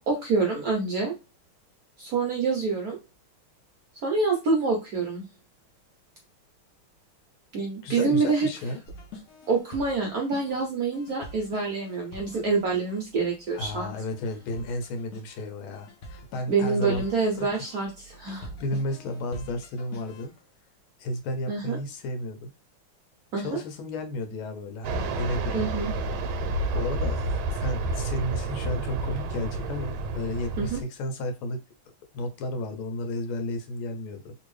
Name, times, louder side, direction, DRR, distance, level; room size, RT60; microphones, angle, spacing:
voice 1, 0.1-1.1 2.0-3.0 4.0-5.3 7.5-8.5 9.5-13.9 16.5-18.5 21.5-21.8 23.3-23.6 25.5-25.9 30.6-30.8, right 4 dB, 65° right, 0 dB, 1.0 m, -26 dB
voice 2, 7.8-8.8 13.5-17.1 17.4-17.5 18.6-20.3 21.0-22.5 23.4-25.9 26.7-31.6 32.1-34.3, left 1 dB, 85° left, 6 dB, 1.6 m, -33 dB
sound 1, 8.8-20.4, left 1 dB, 60° left, 0.9 m, -46 dB
Fixed-wing aircraft airplane, 24.8-30.8, right 2 dB, 80° right, 1.5 m, -30 dB
3.5 x 2.6 x 3.1 m, 0.26 s
omnidirectional pair, 2.3 m